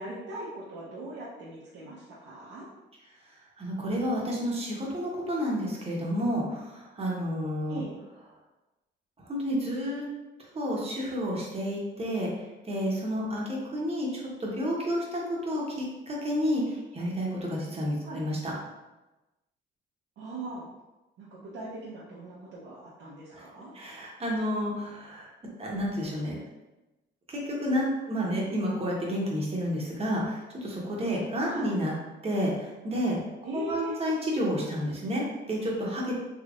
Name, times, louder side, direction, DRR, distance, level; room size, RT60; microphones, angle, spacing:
voice 1, 0.0-2.7 7.7-8.0 18.0-18.2 20.2-20.7 21.2-23.7 31.5-31.7 33.4-34.0, right 2 dB, 75° right, -7 dB, 0.8 m, -40 dB
voice 2, 3.6-6.6 7.0-7.8 9.3-10.0 10.5-12.3 12.7-18.5 23.3-23.4 23.7-25.3 25.6-26.4 27.3-31.9 32.2-32.5 32.8-33.2 33.5-36.1, equal, 30° right, -3 dB, 1.0 m, -30 dB
3.4 x 3.0 x 2.4 m, 1.1 s
cardioid pair, 90°, 20 cm